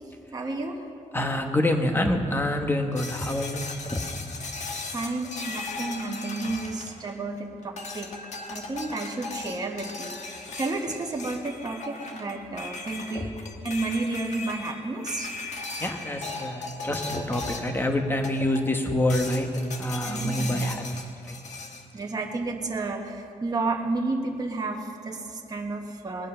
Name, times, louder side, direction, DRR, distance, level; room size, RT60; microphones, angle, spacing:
voice 1, 0.3-0.8 4.9-8.1 8.5-10.1 10.5-13.3 13.6-15.3 20.1-20.6 21.9-26.3, right 3 dB, 30° right, 1 dB, 1.2 m, -31 dB
voice 2, 1.1-3.7 3.9-4.1 13.1-13.3 15.8-19.5 19.8-21.4, left 1 dB, 15° left, 4 dB, 1.2 m, -27 dB
sound 1, 3.0-7.3 7.8-17.8 18.2-18.7 19.1-21.8, left 3 dB, 65° left, 1.3 m, -37 dB
20.0 x 8.3 x 5.6 m, 2.5 s
wide cardioid pair, 135°, 13 cm